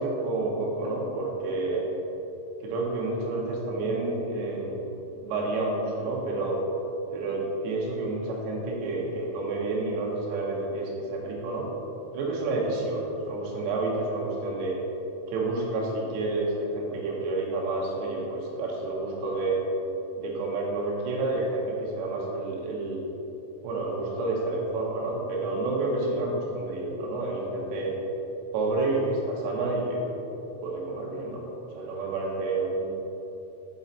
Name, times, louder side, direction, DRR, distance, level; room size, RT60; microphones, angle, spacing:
voice 1, 0.0-1.9 2.6-4.9 5.2-6.6 7.1-11.7 12.1-14.8 15.3-19.6 20.2-23.0 23.6-27.9 28.5-30.0 30.6-31.5 31.7-32.9, right 2 dB, 75° right, -2 dB, 3.1 m, -29 dB
7.4 x 4.7 x 4.1 m, 3.0 s
omnidirectional pair, 5.2 m